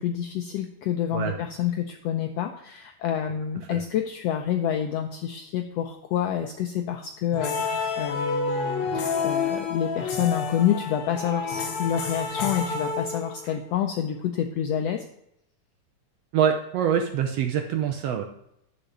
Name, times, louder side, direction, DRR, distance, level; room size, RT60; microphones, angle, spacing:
voice 1, 0.0-15.0, left 9 dB, 90° left, 5 dB, 1.4 m, -28 dB
sound 1, 7.3-13.6, left 4 dB, 65° left, 2.5 m, -29 dB
voice 2, 16.3-18.2, right 8 dB, 75° right, 4 dB, 1.5 m, -24 dB
11.0 x 5.1 x 6.8 m, 0.78 s
omnidirectional pair, 3.6 m